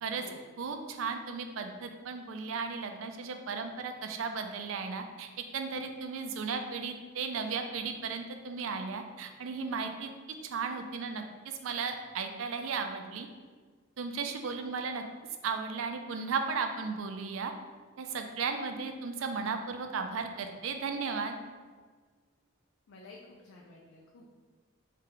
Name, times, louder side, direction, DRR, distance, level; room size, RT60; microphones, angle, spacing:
voice 1, 0.6-10.1 10.4-13.3 14.0-15.0 15.4-17.5 18.0-21.4, right 5 dB, 80° right, 6 dB, 0.4 m, -35 dB
voice 2, 22.9-24.3, left 2 dB, 90° left, -2 dB, 0.4 m, -52 dB
3.3 x 2.7 x 3.7 m, 1.5 s
head